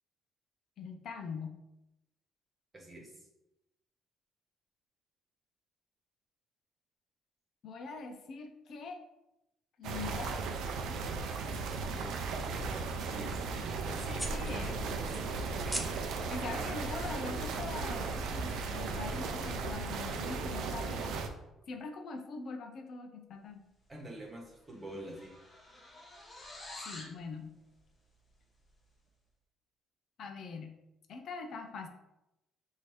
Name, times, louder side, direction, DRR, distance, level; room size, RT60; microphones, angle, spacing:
voice 1, 0.8-1.6 7.6-9.0 9.8-10.4 14.3-14.9 16.2-21.2 21.7-23.6 26.8-27.6 30.2-30.8 31.1-31.9, left 4 dB, 60° left, 5 dB, 0.5 m, -43 dB
voice 2, 2.7-3.2 11.9-14.2 15.3-15.9 23.9-25.3, right 1 dB, 20° right, -1 dB, 1.2 m, -47 dB
sound 1, 9.8-21.3, right 4 dB, 80° right, 0.5 m, -36 dB
sound 2, 14.2-19.7, equal, 5° right, 0.7 m, -43 dB
sound 3, 24.0-24.2 24.5-27.2, left 2 dB, 30° left, 0.9 m, -49 dB
6.0 x 2.7 x 3.2 m, 0.92 s
cardioid pair, 115°, 0 cm